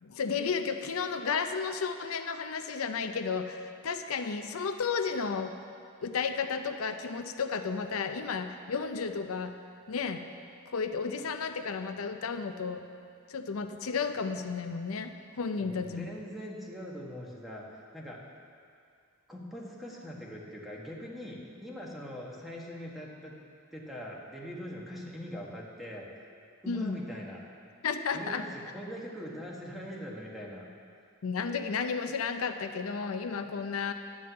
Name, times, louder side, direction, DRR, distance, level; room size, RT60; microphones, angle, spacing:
voice 1, 0.0-5.5 6.0-9.5 9.9-10.2 10.7-12.8 13.3-16.1 26.7-27.0 27.8-28.4 31.2-33.9, left 5 dB, 90° left, 8 dB, 0.6 m, -33 dB
voice 2, 15.6-18.2 19.3-23.4 23.7-26.1 26.6-27.4 28.1-30.7, equal, ahead, -3 dB, 1.3 m, -42 dB
11.0 x 5.4 x 7.7 m, 2.4 s
head